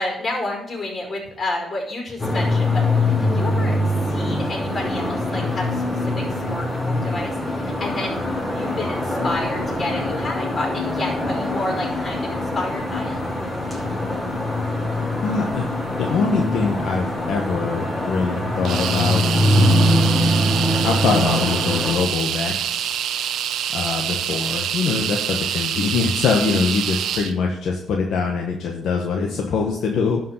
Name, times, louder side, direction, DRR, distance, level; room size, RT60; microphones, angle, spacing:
voice 1, 0.0-8.2 8.5-13.2, left 2 dB, 40° left, 1 dB, 5.1 m, -30 dB
sound 1, 2.2-21.9, left 1 dB, 20° left, 4.7 m, -23 dB
voice 2, 15.2-19.2 19.5-20.3 20.8-23.0 23.7-30.2, left 5 dB, 75° left, 1 dB, 1.4 m, -23 dB
sound 2, 18.6-27.3, right 9 dB, 75° right, 0.8 m, -26 dB
11.5 x 5.4 x 6.8 m, 0.72 s
cardioid pair, 90°, 0 cm